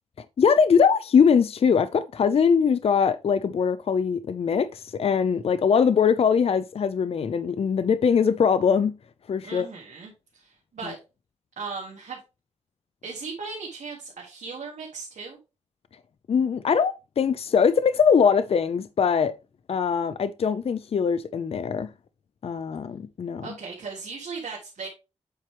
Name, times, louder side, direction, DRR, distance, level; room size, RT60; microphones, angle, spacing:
voice 1, 0.4-9.0 9.3-9.7 16.3-19.3 19.7-21.9 22.4-23.5, left 6 dB, 55° left, 0.4 m, -22 dB
voice 2, 9.4-11.0 11.6-12.2 13.0-15.4 23.4-24.9, right 4 dB, 85° right, 1.7 m, -37 dB
7.8 x 4.5 x 3.3 m
wide cardioid pair, 95°, 12 cm